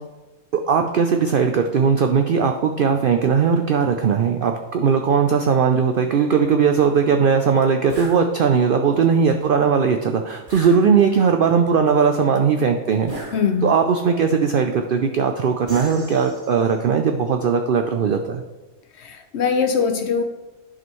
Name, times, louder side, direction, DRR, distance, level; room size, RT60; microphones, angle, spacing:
voice 1, 0.5-13.1 13.6-18.4, right 6 dB, 75° right, 5 dB, 0.5 m, -19 dB
sound 1, 7.9-8.2 10.5-11.3 13.1-13.9 15.7-16.8, right 1 dB, 15° right, 2.7 m, -37 dB
voice 2, 13.3-13.8 19.0-20.2, left 6 dB, 65° left, 7 dB, 0.7 m, -22 dB
11.0 x 5.0 x 3.1 m, 1.1 s
omnidirectional pair, 1.5 m